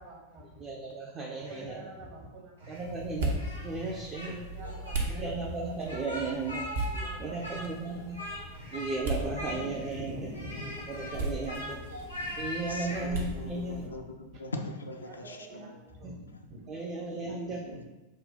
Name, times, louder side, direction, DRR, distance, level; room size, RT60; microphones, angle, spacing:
voice 1, 0.0-0.6 1.5-3.0 4.2-5.3 6.9-7.9 8.3-8.6 9.4-9.6 10.0-11.2 12.2-12.3 12.6-13.0 13.3-13.4 13.8-14.0 15.0-16.2 16.5-16.6 17.2-17.8, right 1 dB, 45° right, 0 dB, 1.0 m, -47 dB
voice 2, 0.6-1.9 2.7-3.3 3.6-4.4 5.0-6.7 7.2-8.2 8.7-10.3 10.9-11.8 12.4-13.8 15.2-15.7 16.0-16.2 16.7-17.6, right 3 dB, 25° right, -1 dB, 0.5 m, -35 dB
sound 1, 1.4-1.8 2.6-3.0 3.8-4.1 5.0-5.3 6.1-6.5 7.3-7.7 8.5-8.9 9.7-10.1 10.9-11.3 12.1-12.5, right 1 dB, 75° right, 1.2 m, -49 dB
sound 2, 2.7-13.9, right 2 dB, 60° right, 0.7 m, -38 dB
Speech, 3.4-4.3 4.6-5.0 5.8-7.1 7.4-8.4 8.7-9.0 9.3-9.9 10.3-13.1, left 1 dB, 90° left, 1.1 m, -40 dB
voice 3, 9.7-10.1 11.0-11.4 12.7-15.8 16.3-16.5 16.7-16.8 17.7-17.9, left 1 dB, 75° left, 5 dB, 0.4 m, -42 dB
5.1 x 2.3 x 3.7 m, 1.1 s
figure-of-eight pair, 90°, 0 cm